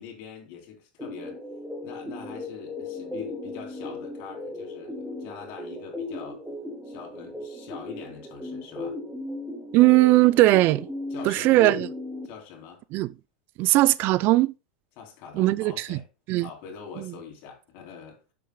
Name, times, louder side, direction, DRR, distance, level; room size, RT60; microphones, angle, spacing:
voice 1, 0.0-1.4 1.8-6.4 6.8-9.0 11.1-11.8 12.2-12.8 15.0-16.1 16.3-18.2, left 7 dB, 55° left, 3.4 m, -43 dB
sound 1, 1.0-12.3, left 2 dB, ahead, 1.8 m, -37 dB
voice 2, 9.7-10.9 11.2-11.9 12.9-13.1 13.6-14.5 15.3-16.0 16.3-16.5 17.0-17.1, right 18 dB, 50° right, 0.4 m, -19 dB
10.0 x 7.5 x 2.2 m
hypercardioid pair, 100°, 5 cm